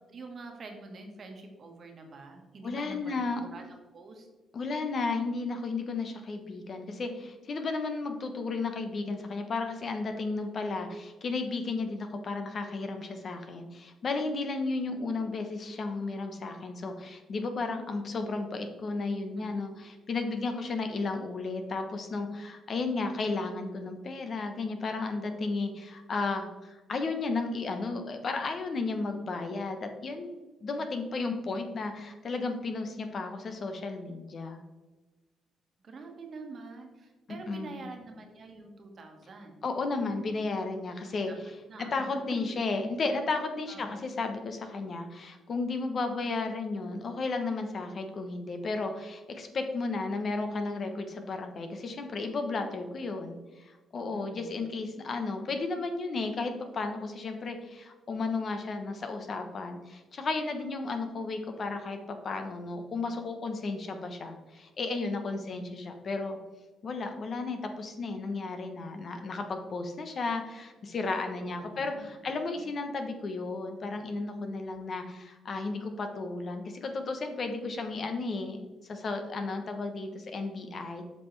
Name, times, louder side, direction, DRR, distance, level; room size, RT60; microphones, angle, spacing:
voice 1, 0.1-4.3 14.9-15.3 19.4-19.8 35.8-39.6 41.0-41.3 41.7-42.1 43.7-44.1 54.1-54.7 65.3-65.7 71.4-72.6 74.6-74.7, right 3 dB, 50° right, 3 dB, 1.4 m, -46 dB
voice 2, 2.6-3.4 4.5-30.3 30.6-34.6 37.5-37.9 39.6-41.3 41.9-66.4 66.8-81.0, left 3 dB, 50° left, 6 dB, 0.9 m, -33 dB
7.7 x 5.4 x 3.2 m, 1.2 s
cardioid pair, 90°, 0 cm